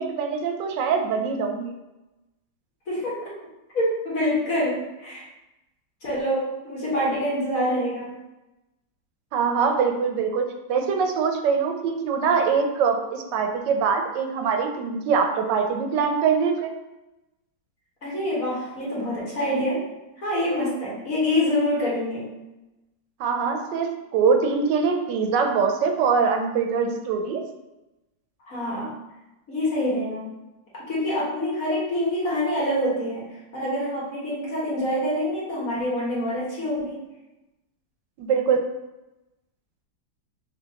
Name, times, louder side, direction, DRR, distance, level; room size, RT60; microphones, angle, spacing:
voice 1, 0.0-1.7 9.3-16.7 23.2-27.4 38.2-38.6, right 5 dB, 85° right, 4 dB, 1.3 m, -23 dB
voice 2, 2.9-3.4 3.7-5.3 6.0-8.2 18.0-19.9 20.2-22.3 28.5-29.0 29.5-30.3 30.7-37.0, left 1 dB, 50° left, -6 dB, 1.8 m, -26 dB
6.1 x 2.8 x 2.9 m, 0.99 s
omnidirectional pair, 1.9 m